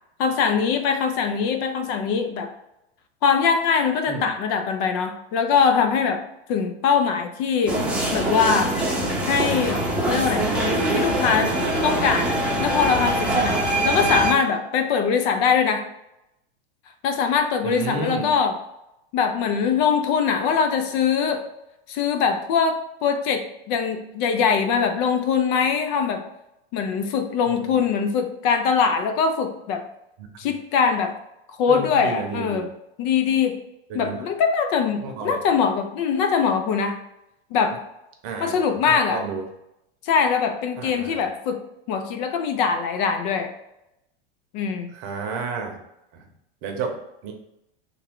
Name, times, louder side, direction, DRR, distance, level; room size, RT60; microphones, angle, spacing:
voice 1, 0.2-2.5 3.2-6.2 6.5-7.8 8.1-8.7 9.2-10.4 10.9-11.5 11.8-15.9 17.0-18.5 19.1-21.4 21.9-26.2 26.7-29.8 30.4-31.1 31.6-32.7 33.0-33.6 33.9-37.0 37.5-37.8 38.4-39.2 40.0-41.6 41.9-43.5 44.5-44.9, left 6 dB, 45° left, 7 dB, 0.5 m, -22 dB
sound 1, 7.7-14.3, right 1 dB, 5° right, 0.7 m, -23 dB
voice 2, 17.6-18.3 27.5-27.8 30.2-30.5 31.6-32.7 33.9-34.3 35.0-35.4 38.2-39.5 40.8-41.2 44.9-45.8 46.1-46.3 46.6-47.3, right 4 dB, 45° right, 3 dB, 0.8 m, -31 dB
3.5 x 2.2 x 3.6 m, 0.86 s
supercardioid pair, 125°, 30 cm